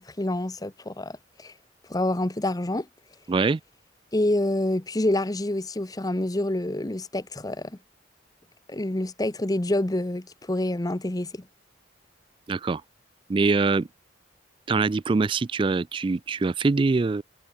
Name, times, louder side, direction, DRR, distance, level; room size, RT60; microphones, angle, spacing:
voice 1, 0.0-1.5 1.9-2.9 4.1-7.7 8.7-11.4, left 1 dB, 20° left, 0.8 m, -27 dB
voice 2, 3.3-3.6 12.5-12.8 13.3-13.9 14.7-17.2, right 4 dB, 25° right, 0.3 m, -23 dB
head